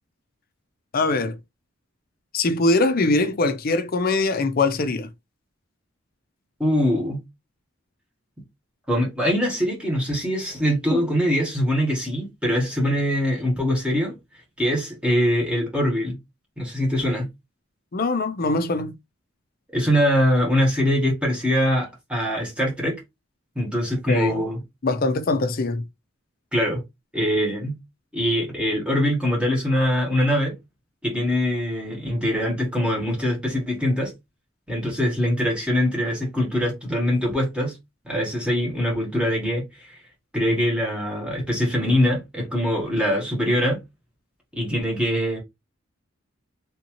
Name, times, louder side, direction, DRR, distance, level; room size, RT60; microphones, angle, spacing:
voice 1, 0.9-1.4 2.3-5.1 17.9-18.9 24.1-24.3 24.8-25.8, left 3 dB, 45° left, 0.5 m, -22 dB
voice 2, 6.6-7.2 8.9-14.1 14.6-16.2 16.6-17.3 19.7-23.0 23.5-24.6 26.5-26.8 27.1-27.8 28.1-30.5 31.0-34.1 34.7-37.8 38.0-39.9 40.3-43.8 44.5-45.4, equal, 5° right, 1.2 m, -23 dB
3.5 x 2.7 x 2.9 m
head